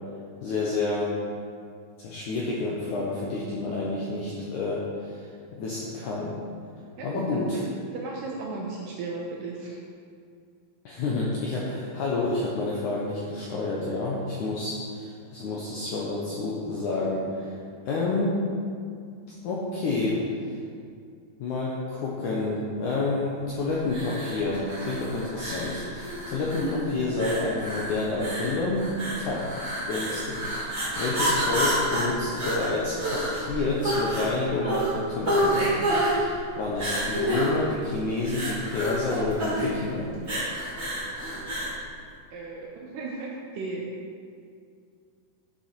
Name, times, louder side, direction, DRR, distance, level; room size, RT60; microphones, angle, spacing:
voice 1, 0.4-1.1 2.0-6.3 7.0-7.6 10.8-17.5 17.8-18.4 19.3-20.2 21.4-35.8 36.1-40.1, left 3 dB, 75° left, -4 dB, 1.8 m, -29 dB
voice 2, 7.0-7.6 7.9-9.8 42.3-43.8, right 3 dB, 75° right, -2 dB, 2.1 m, -35 dB
sound 1, 23.9-41.8, right 1 dB, 20° right, 2.3 m, -29 dB
11.5 x 6.0 x 4.5 m, 2.3 s
omnidirectional pair, 4.7 m